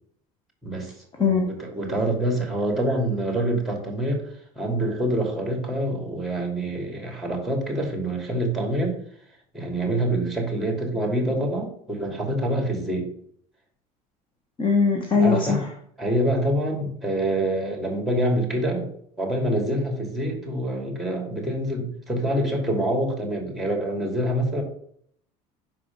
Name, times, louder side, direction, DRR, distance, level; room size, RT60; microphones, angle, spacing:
voice 1, 0.6-0.9 1.2-4.3 4.5-8.9 9.5-13.1 15.1-15.6 16.0-18.9 19.2-24.6, right 1 dB, ahead, 1 dB, 2.7 m, -26 dB
voice 2, 14.6-15.6, left 5 dB, 30° left, 3 dB, 1.2 m, -20 dB
6.0 x 4.9 x 5.3 m, 0.64 s
supercardioid pair, 100°, 17 cm